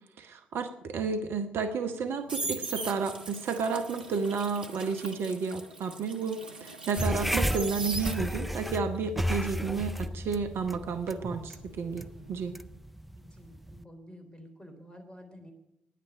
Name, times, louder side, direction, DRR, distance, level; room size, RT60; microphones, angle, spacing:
voice 1, 0.2-12.6, right 5 dB, 50° right, 7 dB, 0.9 m, -32 dB
sound 1, 1.9-8.6 8.9-11.8 12.1-12.4, right 2 dB, 85° right, 0.6 m, -40 dB
sound 2, 7.0-13.8, equal, ahead, 0.6 m, -34 dB
voice 2, 13.1-15.5, equal, 15° left, 3 dB, 3.8 m, -50 dB
10.0 x 9.2 x 10.0 m, 0.88 s
figure-of-eight pair, 40°, 5 cm